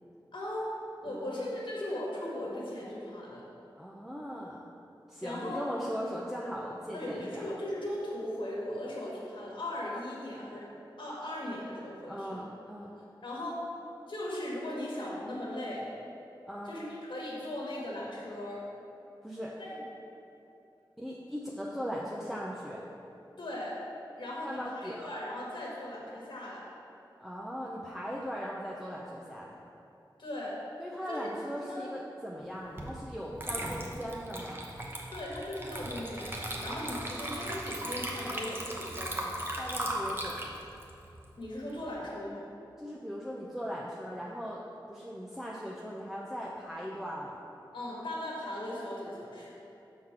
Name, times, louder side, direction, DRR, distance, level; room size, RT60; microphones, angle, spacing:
voice 1, 0.3-0.7 1.0-3.4 5.2-5.6 6.9-10.7 11.0-12.4 13.2-13.6 14.1-15.9 16.6-18.6 19.6-19.7 23.4-23.8 24.2-26.6 30.2-30.6 31.1-31.3 31.6-31.9 35.1-39.3 41.4-42.5 47.7-49.5, left 1 dB, 75° left, -5 dB, 1.5 m, -38 dB
voice 2, 1.1-1.5 3.8-4.7 5.1-7.5 12.1-12.9 16.5-16.8 19.2-19.5 21.0-22.9 24.4-25.1 27.2-29.6 30.8-34.7 39.6-40.5 42.8-44.6 44.9-47.4, equal, ahead, -4 dB, 0.6 m, -39 dB
Water / Liquid, 32.8-32.9 33.3-41.9, right 1 dB, 25° right, 0.9 m, -37 dB
6.2 x 3.7 x 5.9 m, 2.9 s
wide cardioid pair, 65°, 8 cm